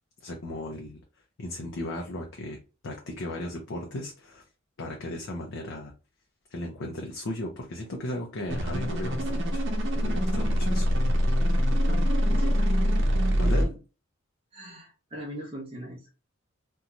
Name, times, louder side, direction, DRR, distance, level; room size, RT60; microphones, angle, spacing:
voice 1, 0.2-1.0 1.4-2.6 2.8-4.4 4.8-5.9 6.5-9.6 9.9-10.9 13.4-13.7, left 1 dB, 65° left, 0 dB, 0.5 m, -36 dB
sound 1, 8.5-13.7, equal, 65° right, 0.7 m, -24 dB
voice 2, 11.8-12.7 13.4-13.7 14.5-16.1, right 1 dB, 30° right, -3 dB, 0.6 m, -40 dB
2.6 x 2.2 x 2.8 m, 0.32 s
head